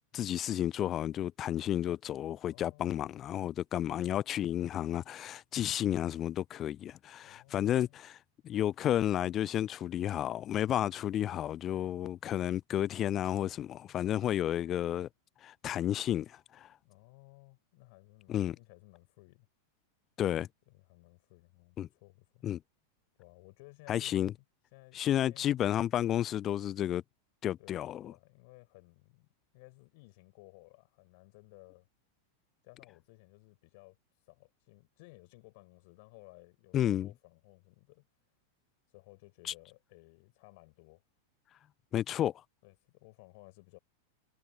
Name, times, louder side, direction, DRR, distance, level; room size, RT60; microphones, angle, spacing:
voice 1, 0.0-8.2 8.4-15.1 15.4-16.7 18.3-18.6 20.2-20.5 21.8-21.9 22.4-22.6 23.9-24.3 24.9-27.0 27.4-28.1 36.7-37.1 41.9-42.3, left 11 dB, 30° left, 0.4 m, -32 dB
voice 2, 7.2-8.0 16.8-19.5 20.7-22.5 23.2-24.3 24.7-25.7 27.6-29.3 29.5-31.9 32.6-34.0 34.2-38.0 38.9-41.0 42.6-43.8, left 27 dB, 50° left, 7.5 m, -58 dB
figure-of-eight pair, 90°, 0 cm